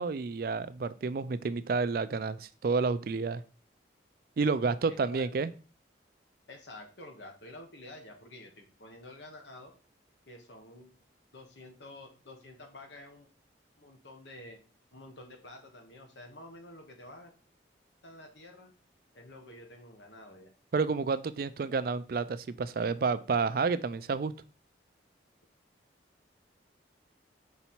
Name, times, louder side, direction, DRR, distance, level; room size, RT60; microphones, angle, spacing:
voice 1, 0.0-3.4 4.4-5.5 20.7-24.3, right 4 dB, 50° right, 14 dB, 0.4 m, -30 dB
voice 2, 4.9-5.2 6.5-9.7 10.3-10.9 11.3-13.3 13.8-14.6 14.9-17.3 18.0-18.7 19.1-20.5, left 1 dB, 75° left, 3 dB, 1.3 m, -49 dB
5.6 x 4.0 x 4.4 m, 0.37 s
head